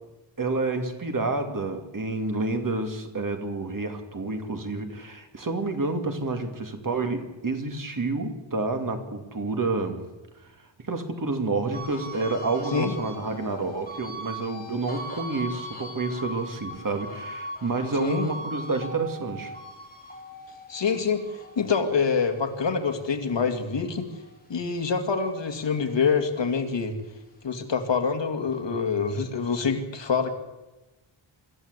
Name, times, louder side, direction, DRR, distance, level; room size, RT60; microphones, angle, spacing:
voice 1, 0.4-10.0 10.9-19.5, right 3 dB, 40° right, 6 dB, 2.4 m, -29 dB
sound 1, 11.7-24.4 24.8-26.4, right 1 dB, 20° left, 4.7 m, -40 dB
voice 2, 20.7-24.1 24.5-27.0 27.4-30.3, left 5 dB, 60° left, 5 dB, 2.4 m, -26 dB
25.5 x 14.0 x 8.2 m, 1.1 s
wide cardioid pair, 155°, 49 cm